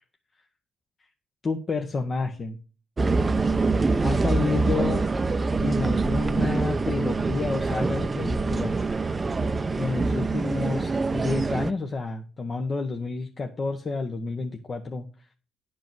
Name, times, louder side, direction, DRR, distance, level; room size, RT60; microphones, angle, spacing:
voice 1, 1.4-2.6 4.0-5.1 5.6-8.8 9.8-15.1, left 4 dB, 40° left, 4 dB, 1.2 m, -30 dB
sound 1, 3.0-11.7, right 3 dB, 30° right, 0.7 m, -25 dB
10.5 x 5.0 x 6.2 m, 0.37 s
cardioid pair, 90°, 0 cm